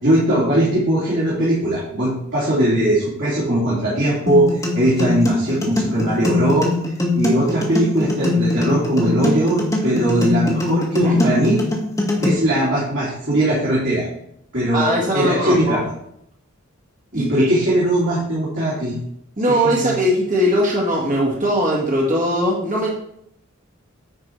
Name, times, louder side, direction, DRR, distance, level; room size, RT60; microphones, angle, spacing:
voice 1, 0.0-6.7 7.1-11.6 12.2-14.1 14.5-15.8 17.1-19.0 19.5-20.0, right 1 dB, 55° right, -7 dB, 2.9 m, -20 dB
sound 1, 4.3-12.3, left 2 dB, 15° left, 1.6 m, -21 dB
voice 2, 14.7-15.8 17.1-17.5 19.4-22.9, equal, 35° right, -3 dB, 1.8 m, -20 dB
9.9 x 4.9 x 4.6 m, 0.74 s
head